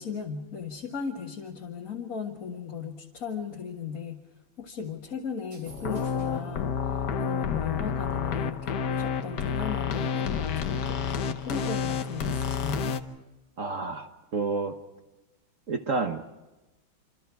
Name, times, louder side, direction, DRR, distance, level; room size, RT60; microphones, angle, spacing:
voice 1, 0.0-4.2 4.6-13.0, left 6 dB, 45° left, -2 dB, 2.0 m, -36 dB
sound 1, 5.4-6.6, right 4 dB, 80° right, 3.4 m, -54 dB
sound 2, 5.7-13.0, left 6 dB, 60° left, 1.5 m, -29 dB
voice 2, 13.6-14.8 15.7-16.2, right 4 dB, 45° right, 6 dB, 1.3 m, -30 dB
27.0 x 26.5 x 4.7 m, 1.0 s
omnidirectional pair, 2.2 m